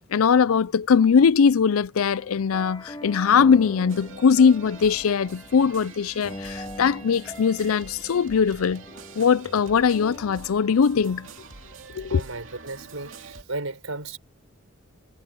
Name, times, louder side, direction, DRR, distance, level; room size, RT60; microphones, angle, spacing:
voice 1, 0.1-8.8 9.2-11.3 11.9-12.2, left 6 dB, 85° left, 0.5 m, -20 dB
sound 1, 2.2-11.6, left 1 dB, 20° left, 2.5 m, -43 dB
sound 2, 3.9-13.4, right 4 dB, 65° right, 2.7 m, -45 dB
voice 2, 12.1-14.2, right 3 dB, 85° right, 4.8 m, -34 dB
head